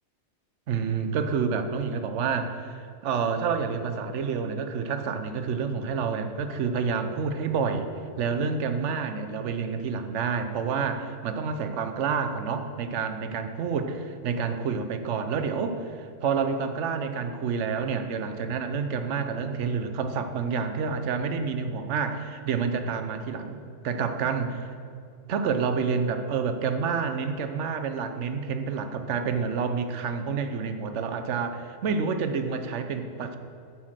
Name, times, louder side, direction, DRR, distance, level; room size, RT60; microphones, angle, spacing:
voice 1, 0.7-7.9 8.2-24.5 25.3-33.4, right 5 dB, 85° right, 8 dB, 1.0 m, -28 dB
7.3 x 5.9 x 6.4 m, 2.4 s
omnidirectional pair, 1.2 m